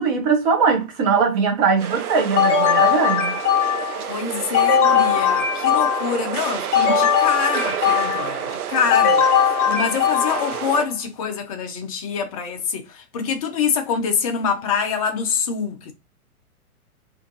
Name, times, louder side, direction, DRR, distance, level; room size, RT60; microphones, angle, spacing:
voice 1, 0.0-3.4, right 5 dB, 25° right, 0.6 m, -20 dB
sound 1, 1.8-10.9, right 9 dB, 70° right, 0.6 m, -29 dB
sound 2, 2.4-4.0 4.5-6.2 6.7-8.4 8.9-10.6, left 8 dB, 50° left, 1.1 m, -19 dB
voice 2, 4.1-15.9, left 6 dB, 25° left, 0.5 m, -25 dB
2.6 x 2.5 x 2.6 m
figure-of-eight pair, 115°, 46 cm